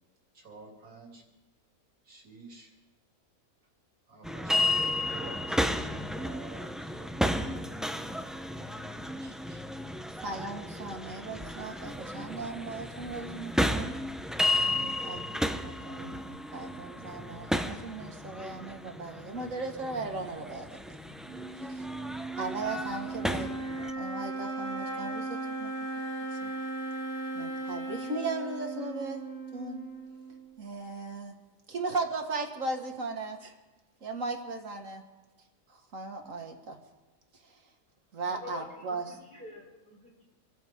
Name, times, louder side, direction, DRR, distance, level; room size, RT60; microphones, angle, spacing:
voice 1, 0.3-1.2 2.0-2.7 4.1-7.6 8.5-9.6, right 4 dB, 85° right, -2 dB, 3.4 m, -50 dB
sound 1, 4.2-23.9, left 1 dB, ahead, 0.5 m, -33 dB
voice 2, 10.2-13.9 14.5-21.0 21.7-21.8 22.4-23.5 24.0-25.7 26.4-26.5 27.3-29.2 29.5-29.8 30.6-31.3 31.7-33.5 34.0-35.0 35.9-36.8 38.1-39.1, right 3 dB, 65° right, 4 dB, 2.1 m, -37 dB
sound 2, 21.2-30.6, right 2 dB, 70° left, 5.5 m, -37 dB
voice 3, 38.2-40.2, left 2 dB, 40° left, -3 dB, 3.9 m, -47 dB
27.0 x 14.0 x 3.7 m, 1.1 s
omnidirectional pair, 1.5 m